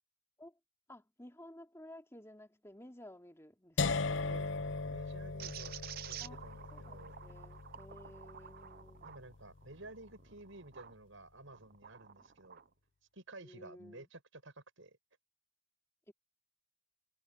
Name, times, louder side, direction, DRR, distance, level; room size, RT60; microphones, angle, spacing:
voice 1, 0.9-4.0 6.2-6.4 6.7-9.1 13.4-14.1 16.1-16.2, left 1 dB, 15° left, 2.8 m, -54 dB
sound 1, 3.8-9.7, left 4 dB, 60° left, 0.7 m, -39 dB
voice 2, 4.3-5.8 6.0-7.2 9.0-12.6 13.1-15.0, right 2 dB, 65° right, 6.1 m, -53 dB
sound 2, 5.4-11.0 11.5-12.7, right 10 dB, 45° right, 0.5 m, -50 dB
head